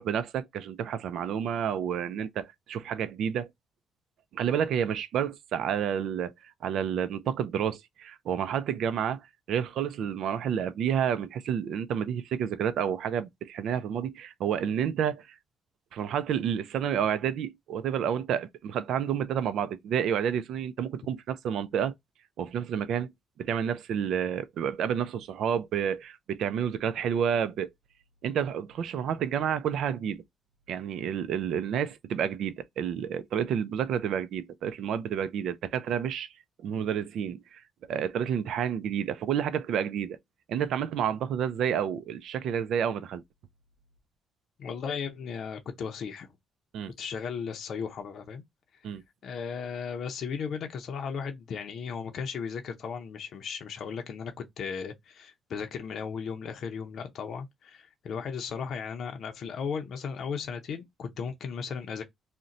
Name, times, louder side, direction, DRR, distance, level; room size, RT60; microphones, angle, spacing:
voice 1, 0.0-3.5 4.3-6.3 6.6-9.2 9.5-15.3 15.9-21.9 22.4-23.1 23.4-27.7 28.2-30.2 30.7-36.3 36.6-37.6 37.9-40.2 40.5-43.2 46.7-46.9 48.8-49.0, right 8 dB, 75° right, 0.3 m, -30 dB
voice 2, 44.6-46.3 47.0-48.4 49.2-62.0, left 6 dB, 65° left, 0.5 m, -36 dB
2.5 x 2.1 x 3.9 m
cardioid pair, 90°, 0 cm